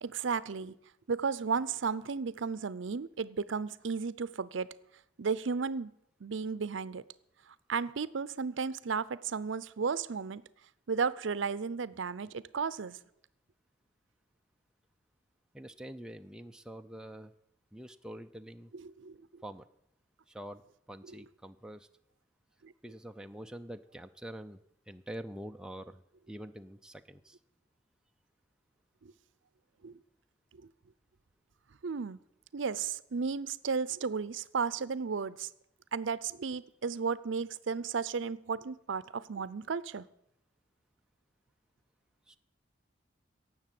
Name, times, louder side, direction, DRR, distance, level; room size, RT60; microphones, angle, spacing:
voice 1, 0.0-0.7 1.1-4.7 5.2-5.9 6.2-7.0 7.5-10.4 10.9-13.0 18.8-19.4 21.1-21.2 22.6-22.7 29.0-29.1 29.8-30.0 30.5-30.6 31.8-32.2 32.5-35.5 35.9-40.1, right 5 dB, 80° right, 17 dB, 0.6 m, -34 dB
voice 2, 15.5-17.3 17.7-18.7 19.4-19.7 20.3-20.6 20.9-21.9 22.8-26.0 26.3-27.4 42.3-42.4, right 1 dB, 5° right, 6 dB, 0.5 m, -45 dB
17.5 x 7.3 x 7.6 m, 0.77 s
head